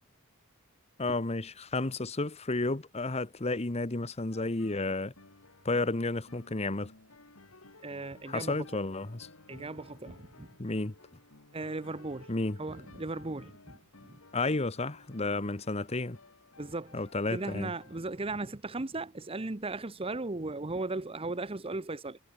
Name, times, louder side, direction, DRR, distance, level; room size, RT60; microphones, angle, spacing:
voice 1, 1.0-5.1 5.6-6.9 8.3-9.3 10.6-10.9 12.3-12.6 14.3-16.2 16.9-17.7, left 2 dB, 30° left, 1.1 m, -32 dB
sound 1, 4.3-18.0, left 2 dB, 80° left, 3.2 m, -56 dB
voice 2, 7.8-8.6 9.5-10.5 11.5-12.3 12.6-13.8 14.1-14.2 16.6-17.0 17.3-22.2, right 2 dB, 25° right, 0.9 m, -37 dB
head